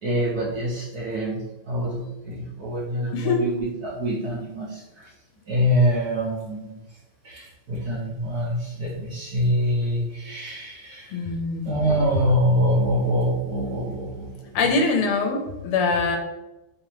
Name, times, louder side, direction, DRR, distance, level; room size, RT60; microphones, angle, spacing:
voice 1, 0.0-5.1 5.5-6.8 7.2-11.3 11.6-14.5, equal, 60° right, -5 dB, 1.1 m, -25 dB
voice 2, 3.1-3.4 11.1-11.7 14.5-16.2, left 4 dB, 80° left, 3 dB, 1.6 m, -23 dB
5.1 x 2.8 x 3.0 m, 1.0 s
omnidirectional pair, 2.4 m